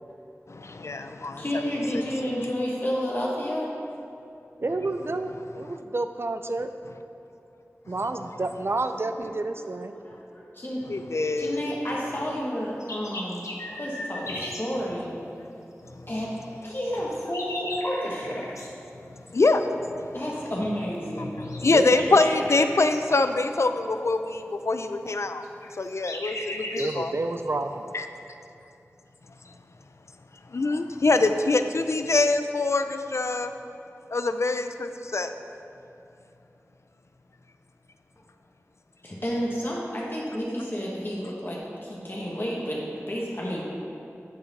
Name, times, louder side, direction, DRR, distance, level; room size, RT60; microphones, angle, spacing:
voice 1, 0.5-1.6 1.9-2.3 10.9-11.7 19.3-19.6 21.2-25.4 25.8-27.1 27.9-28.1 30.5-33.5 34.1-35.3, left 3 dB, 65° left, 8 dB, 0.4 m, -24 dB
voice 2, 1.4-3.7 9.9-10.8 11.4-13.4 13.8-15.2 16.1-16.3 16.6-18.5 20.1-21.3 39.0-42.8 43.1-43.6, equal, 45° left, -4 dB, 1.1 m, -30 dB
voice 3, 4.6-6.7 7.9-9.9 21.7-22.2 26.8-27.9, right 2 dB, 50° right, 8 dB, 0.4 m, -29 dB
sound 1, 12.6-14.7 16.7-18.7 21.4-23.0 25.4-27.0, left 1 dB, 85° left, 0.7 m, -37 dB
10.5 x 3.9 x 4.0 m, 2.8 s
wide cardioid pair, 45°, 5 cm